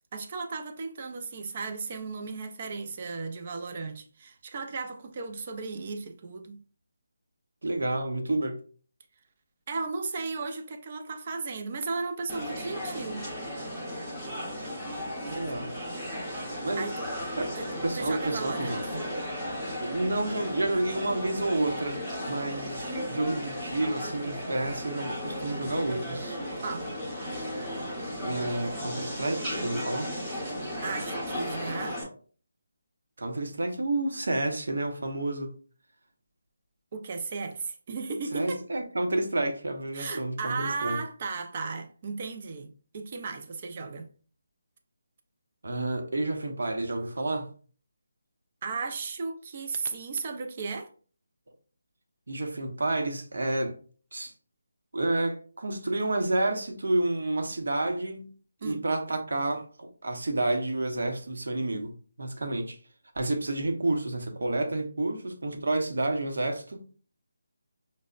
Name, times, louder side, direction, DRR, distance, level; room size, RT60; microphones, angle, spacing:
voice 1, 0.1-6.6 9.7-13.3 16.8-17.1 17.6-17.7 18.0-18.9 26.6-26.9 30.8-32.0 36.9-38.6 39.9-44.1 48.6-50.9 58.6-58.8, right 4 dB, 30° right, 0.4 m, -35 dB
voice 2, 7.6-8.6 15.3-15.7 16.6-16.9 17.4-17.5 17.8-19.1 19.8-26.4 28.2-30.1 33.2-35.6 38.3-41.0 45.6-47.5 52.3-53.8 54.1-54.3 54.9-58.3 58.6-62.8 63.1-66.8, right 2 dB, 70° right, 0.8 m, -30 dB
sound 1, 12.3-32.0, equal, 5° right, 0.7 m, -35 dB
5.2 x 2.0 x 2.3 m
figure-of-eight pair, 170°, 0 cm